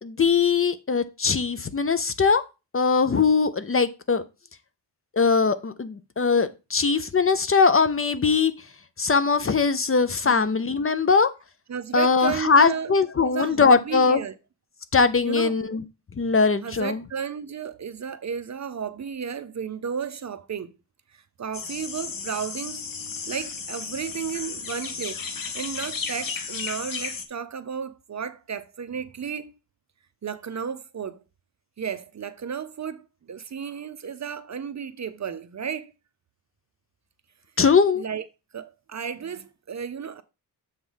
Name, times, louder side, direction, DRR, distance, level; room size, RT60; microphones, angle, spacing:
voice 1, 0.0-2.4 2.7-4.2 5.2-8.5 9.0-11.3 11.9-14.2 14.9-15.8 16.2-17.0 37.6-38.0, left 5 dB, 35° left, 0.6 m, -21 dB
voice 2, 11.7-12.9 13.2-14.4 15.2-15.5 16.6-20.7 21.1-22.8 23.3-25.2 25.5-29.5 30.2-31.2 31.8-35.9 38.0-38.2 38.5-40.2, right 7 dB, 45° right, 0.6 m, -33 dB
sound 1, 21.5-27.3, left 5 dB, 55° left, 1.2 m, -34 dB
7.2 x 3.3 x 5.5 m
wide cardioid pair, 110°, 40 cm